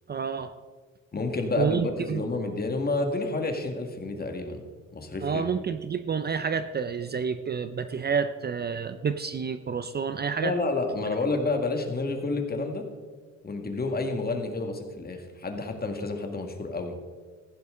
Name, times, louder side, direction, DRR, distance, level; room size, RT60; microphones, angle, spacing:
voice 1, 0.1-0.5 1.6-2.2 5.2-10.5, right 6 dB, 35° right, 11 dB, 0.6 m, -29 dB
voice 2, 1.1-4.6 4.9-5.4 10.4-12.8 13.4-17.0, left 3 dB, 30° left, 4 dB, 1.9 m, -29 dB
15.0 x 11.0 x 3.8 m, 1.5 s
cardioid pair, 90°, 30 cm